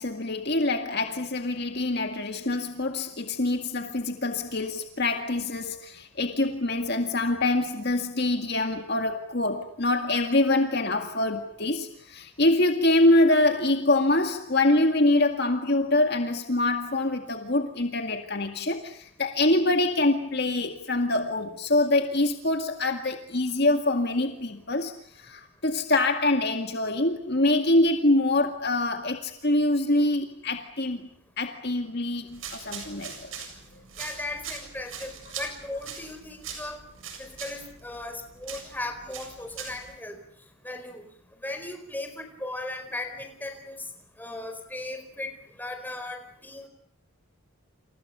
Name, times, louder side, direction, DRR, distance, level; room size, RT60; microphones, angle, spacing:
voice 1, 0.0-31.1 31.4-33.3, left 2 dB, 50° left, 2.1 m, -25 dB
sound 1, 32.3-40.0, right 6 dB, 65° right, 7.4 m, -42 dB
voice 2, 34.0-36.8 37.2-40.2 40.6-41.0 41.4-43.9 44.2-46.7, left 2 dB, 10° left, 4.6 m, -37 dB
30.0 x 28.5 x 6.9 m
head